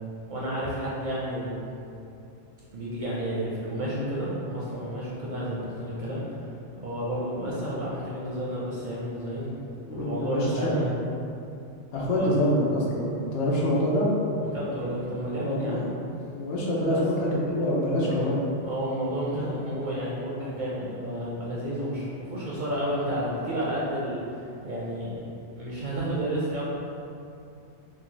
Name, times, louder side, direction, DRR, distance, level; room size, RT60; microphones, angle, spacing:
voice 1, 0.3-1.8 2.7-6.2 6.8-9.6 9.9-11.0 12.1-12.3 14.4-15.8 16.8-17.1 17.9-18.3 18.6-25.3 25.5-26.6, right 1 dB, 55° right, -7 dB, 0.6 m, -31 dB
voice 2, 9.9-10.8 11.9-14.1 15.4-15.8 16.3-18.4, left 1 dB, 75° left, -4 dB, 1.0 m, -26 dB
3.0 x 2.4 x 3.8 m, 2.6 s
omnidirectional pair, 1.2 m